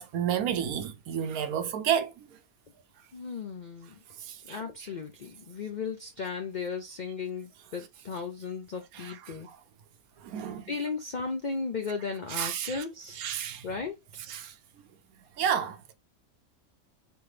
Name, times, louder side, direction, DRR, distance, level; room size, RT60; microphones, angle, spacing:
voice 1, 0.0-2.1 4.3-4.4 9.0-9.1 10.2-10.6 12.4-12.8 13.2-13.6 14.3-14.5 15.4-15.9, right 9 dB, 70° right, 1.0 m, -30 dB
voice 2, 3.1-4.0 4.4-9.5 10.7-13.2 13.6-14.2, left 5 dB, 60° left, 0.5 m, -36 dB
4.3 x 3.3 x 3.2 m
omnidirectional pair, 1.6 m